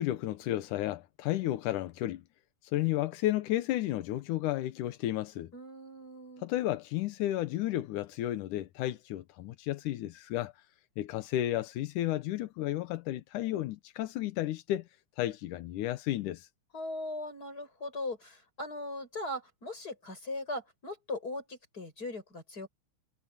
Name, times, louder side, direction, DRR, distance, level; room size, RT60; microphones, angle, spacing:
voice 1, 0.0-2.2 2.7-5.5 6.4-10.5 11.0-14.8 15.2-16.5, left 14 dB, 90° left, 2.5 m, -32 dB
voice 2, 5.5-6.5 16.7-22.7, left 2 dB, 30° left, 8.0 m, -39 dB
omnidirectional pair, 3.5 m